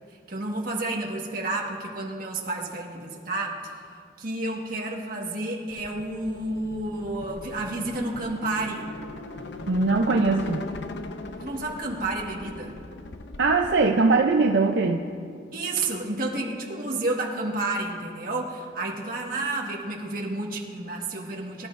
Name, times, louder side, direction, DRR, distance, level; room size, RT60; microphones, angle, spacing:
voice 1, 0.3-3.8 4.2-8.9 11.4-12.8 15.5-21.7, right 2 dB, 50° right, -1 dB, 1.7 m, -30 dB
sound 1, 5.7-13.9, left 3 dB, 70° left, 0.6 m, -40 dB
voice 2, 9.7-10.6 13.4-15.0, right 3 dB, 70° right, 2 dB, 0.6 m, -21 dB
23.0 x 11.5 x 2.6 m, 2.3 s
head